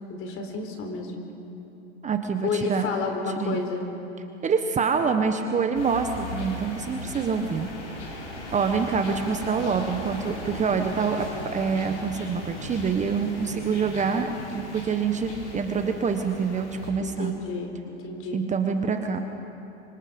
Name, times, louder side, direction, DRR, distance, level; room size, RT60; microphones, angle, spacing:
voice 1, 0.1-1.1 2.4-3.8 17.0-18.4, left 4 dB, 40° left, 4 dB, 4.1 m, -31 dB
voice 2, 2.0-2.9 3.4-3.6 4.4-7.7 8.5-11.3 11.5-17.3 18.3-19.2, right 5 dB, 20° right, 6 dB, 1.2 m, -26 dB
sound 1, 5.7-16.9, left 1 dB, 90° left, 5.5 m, -38 dB
25.5 x 25.0 x 5.3 m, 2.9 s
hypercardioid pair, 110°, 34 cm